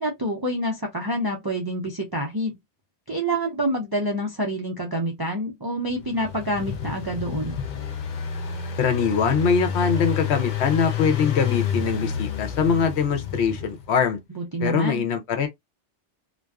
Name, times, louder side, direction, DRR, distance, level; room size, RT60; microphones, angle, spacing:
voice 1, 0.0-2.5 3.1-7.6 14.3-15.1, right 1 dB, 40° right, 0.3 m, -27 dB
Engine, 5.9-13.9, left 7 dB, 55° left, 0.5 m, -29 dB
voice 2, 8.8-14.2 14.6-15.5, left 6 dB, 70° left, 0.9 m, -22 dB
2.5 x 2.2 x 2.2 m
omnidirectional pair, 1.2 m